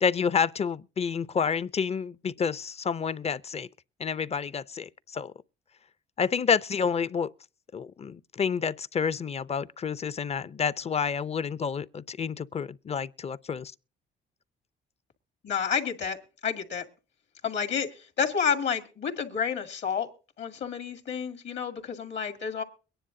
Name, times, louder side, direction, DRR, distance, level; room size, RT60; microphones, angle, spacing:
voice 1, 0.0-3.7 4.0-5.3 6.2-7.3 7.7-13.7, left 6 dB, 30° left, 0.5 m, -29 dB
voice 2, 15.4-16.2 16.4-16.8 17.4-20.1 20.4-22.6, left 7 dB, 65° left, 2.1 m, -30 dB
23.0 x 10.0 x 2.7 m
cardioid pair, 90°, 20 cm